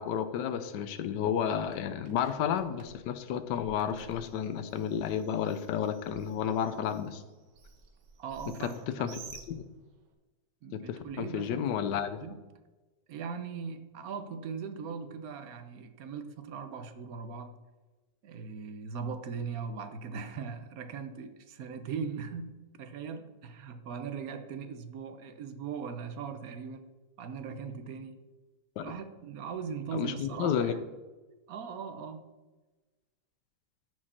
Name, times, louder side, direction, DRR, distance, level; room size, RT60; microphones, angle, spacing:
voice 1, 0.0-7.2 8.6-9.1 9.5-9.6 10.7-12.2 28.8-28.9 29.9-30.7, left 8 dB, 90° left, 1.3 m, -32 dB
Bird, 1.2-10.1, right 5 dB, 90° right, 1.6 m, -54 dB
voice 2, 8.2-9.2 10.6-11.8 12.2-12.4 13.1-17.5 18.2-26.8 27.2-28.2 28.8-30.8 31.5-32.3, right 6 dB, 65° right, 1.2 m, -39 dB
13.5 x 4.7 x 4.3 m
omnidirectional pair, 1.8 m